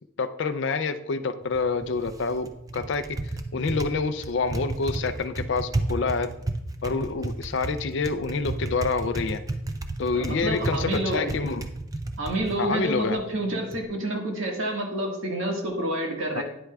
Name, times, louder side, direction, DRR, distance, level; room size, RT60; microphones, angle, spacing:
voice 1, 0.2-6.3 6.8-9.4 10.0-11.7 12.6-13.2 16.3-16.4, left 4 dB, 55° left, 11 dB, 0.4 m, -27 dB
Typing, 1.4-13.8, right 2 dB, 15° right, 0.4 m, -33 dB
voice 2, 10.1-11.3 12.2-16.4, right 1 dB, 70° right, 0 dB, 1.6 m, -28 dB
9.9 x 8.0 x 2.3 m, 0.85 s
head